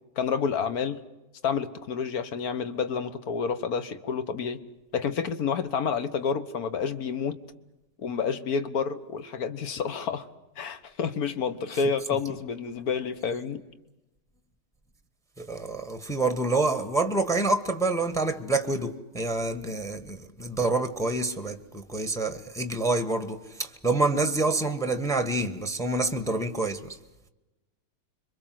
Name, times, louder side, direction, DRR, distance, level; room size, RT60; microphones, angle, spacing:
voice 1, 0.2-1.0 1.4-4.6 4.9-7.4 8.0-10.3 10.6-13.6, left 6 dB, 55° left, 1.7 m, -29 dB
voice 2, 15.4-27.0, right 2 dB, ahead, 1.3 m, -27 dB
26.0 x 23.5 x 7.7 m
omnidirectional pair, 2.0 m